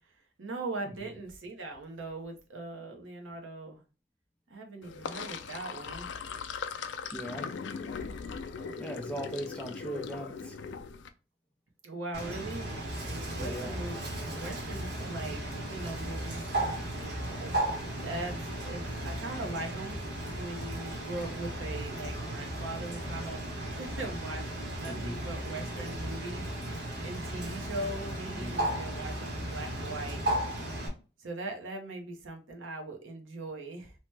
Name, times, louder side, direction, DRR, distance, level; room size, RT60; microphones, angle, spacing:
voice 1, 0.4-3.8 4.5-6.1 8.6-9.2 11.8-12.7 13.1-17.6 18.0-20.0 20.3-23.5 23.8-26.7 27.0-30.2 31.2-33.9, right 2 dB, 90° right, 0.8 m, -40 dB
Sink (filling or washing), 4.8-11.1, left 5 dB, 70° left, 0.4 m, -39 dB
voice 2, 7.1-7.5 8.8-10.6 13.4-13.8 24.8-25.2 28.3-28.6, right 1 dB, 5° left, 0.4 m, -39 dB
Bird, 12.1-30.9, right 1 dB, 55° right, 1.0 m, -35 dB
2.8 x 2.1 x 3.2 m
head